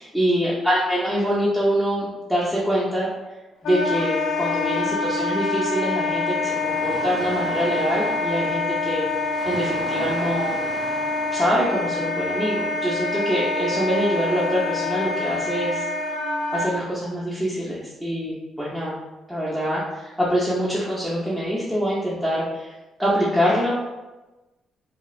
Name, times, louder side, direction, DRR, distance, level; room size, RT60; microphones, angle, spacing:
voice 1, 0.0-3.1 3.6-9.0 9.4-10.5 11.3-15.9 16.5-19.0 19.3-22.7 23.0-23.7, equal, ahead, -8 dB, 0.5 m, -24 dB
Wind instrument woodwind instrument, 3.6-16.7, left 2 dB, 80° left, 0.4 m, -26 dB
sound 1, 6.4-11.7, left 1 dB, 35° left, 0.7 m, -38 dB
3.0 x 2.3 x 2.4 m, 1.1 s
cardioid pair, 90°, 0 cm